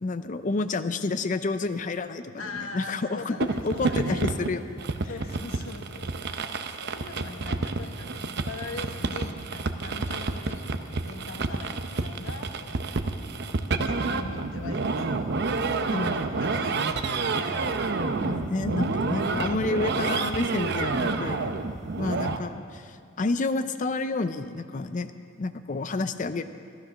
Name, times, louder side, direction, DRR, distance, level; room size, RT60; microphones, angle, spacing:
voice 1, 0.0-4.7 5.0-5.1 15.9-16.2 18.2-21.6 22.0-25.1 25.4-26.4, left 3 dB, 40° left, 10 dB, 0.5 m, -29 dB
voice 2, 2.4-4.3 5.0-12.9 13.7-17.6, left 3 dB, 80° left, 4 dB, 1.3 m, -42 dB
sound 1, 3.4-22.4, right 3 dB, 55° right, 0.7 m, -29 dB
13.0 x 13.0 x 6.1 m, 2.4 s
head